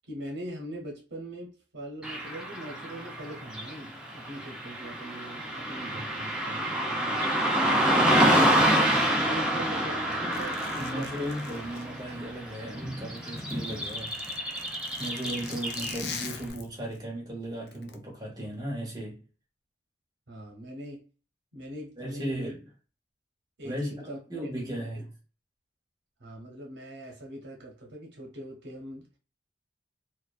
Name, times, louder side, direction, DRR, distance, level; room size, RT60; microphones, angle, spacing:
voice 1, 0.1-7.4 9.0-11.3 20.3-21.0 21.5-22.3 23.6-24.5 24.9-25.0 26.2-29.1, right 1 dB, 85° right, 0.8 m, -42 dB
Car passing by / Traffic noise roadway noise, 2.0-16.3, right 1 dB, 5° right, 0.4 m, -28 dB
voice 2, 8.2-8.6 10.8-14.2 15.0-19.2 22.0-22.6 23.6-23.9 24.3-25.1, right 1 dB, 20° right, 0.8 m, -36 dB
Zipper (clothing), 10.3-12.7 13.0-17.0 17.7-18.0, left 6 dB, 60° left, 0.4 m, -43 dB
2.5 x 2.2 x 2.3 m
head